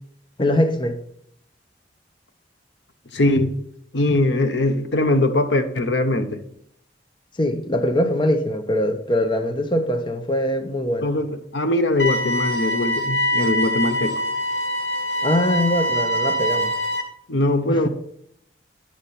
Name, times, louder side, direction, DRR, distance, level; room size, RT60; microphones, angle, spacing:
voice 1, 0.4-1.0 7.4-11.1 15.2-16.7 17.7-17.9, left 1 dB, 25° left, 0.7 m, -22 dB
voice 2, 3.1-3.5 3.9-6.4 11.0-14.2 17.3-17.9, left 1 dB, 85° left, 1.0 m, -21 dB
sound 1, 12.0-17.0, equal, 60° left, 1.5 m, -24 dB
10.5 x 6.7 x 4.2 m
head